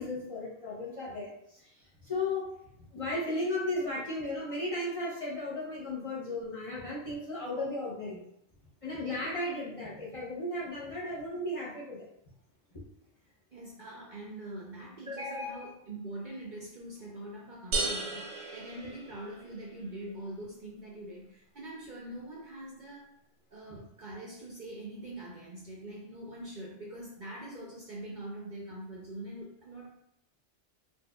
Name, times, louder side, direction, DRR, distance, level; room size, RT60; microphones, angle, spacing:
voice 1, 0.0-2.5 2.9-8.2 8.8-12.0 15.1-15.7, left 2 dB, 35° left, -7 dB, 0.8 m, -35 dB
voice 2, 13.5-23.1 23.5-29.9, right 1 dB, 50° right, -3 dB, 0.7 m, -43 dB
sound 1, 17.7-19.6, right 3 dB, 90° right, 1.1 m, -34 dB
4.3 x 2.5 x 2.2 m, 0.75 s
omnidirectional pair, 1.2 m